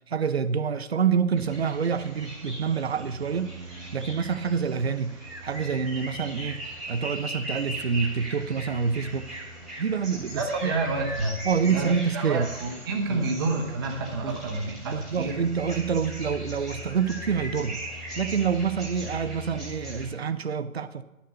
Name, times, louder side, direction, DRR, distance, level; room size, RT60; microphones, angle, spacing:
voice 1, 0.1-3.5 3.9-5.2 5.4-6.6 6.9-9.3 9.8-10.7 11.5-12.5 13.1-13.2 14.2-14.4 14.8-17.8 18.2-21.0, right 6 dB, 50° right, 12 dB, 0.7 m, -27 dB
sound 1, 1.4-20.1, right 1 dB, ahead, 2.3 m, -39 dB
voice 2, 10.4-11.4 11.7-11.9 12.1-15.4, right 3 dB, 15° right, 0 dB, 1.1 m, -29 dB
11.0 x 6.8 x 6.8 m, 0.95 s
figure-of-eight pair, 160°, 42 cm